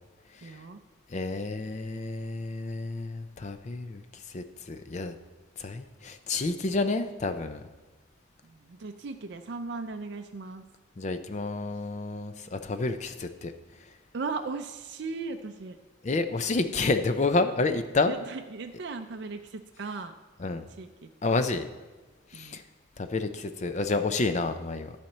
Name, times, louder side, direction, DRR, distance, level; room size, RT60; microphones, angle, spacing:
voice 1, 0.4-0.8 8.4-10.6 14.1-15.8 17.7-17.8 18.1-20.1 20.8-21.1 22.3-22.6, right 4 dB, 55° right, 5 dB, 0.4 m, -37 dB
voice 2, 1.1-4.0 4.3-5.1 5.6-7.6 11.0-13.5 16.0-18.1 20.4-20.7 21.2-21.7 22.3-22.6 23.0-24.9, left 3 dB, 35° left, 9 dB, 0.4 m, -29 dB
10.5 x 4.3 x 7.1 m, 1.2 s
head